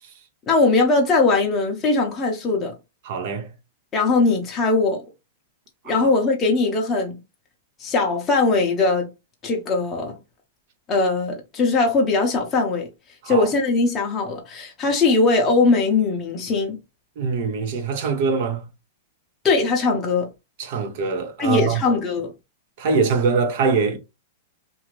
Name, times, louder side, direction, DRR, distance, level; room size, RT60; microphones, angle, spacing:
voice 1, 0.5-2.7 3.9-5.0 5.9-7.2 7.8-9.1 9.4-10.2 10.9-12.9 13.3-16.8 19.4-20.3 21.4-22.3, left 3 dB, 20° left, 0.7 m, -20 dB
voice 2, 3.0-3.5 5.8-6.1 13.2-13.5 17.2-18.7 20.6-21.8 22.8-24.0, right 5 dB, 50° right, 0.7 m, -23 dB
2.6 x 2.4 x 3.0 m
supercardioid pair, 155°, 0 cm